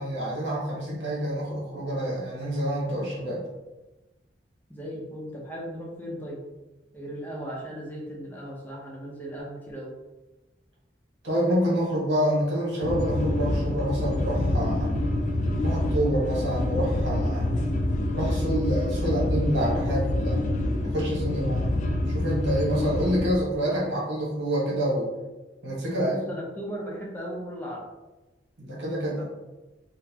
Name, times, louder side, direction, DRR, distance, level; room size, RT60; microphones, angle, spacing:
voice 1, 0.0-3.4 11.2-14.9 15.5-17.5 18.1-21.7 22.1-25.1 25.6-26.2 28.6-29.2, right 1 dB, 80° right, -4 dB, 1.2 m, -27 dB
voice 2, 4.7-6.4 6.9-9.9 19.0-19.1 19.9-20.3 20.8-20.9 25.9-27.9 29.1-29.2, equal, 10° left, -3 dB, 0.6 m, -37 dB
sound 1, 12.8-23.3, left 1 dB, 45° left, 0.3 m, -26 dB
3.9 x 2.1 x 2.8 m, 1.1 s
head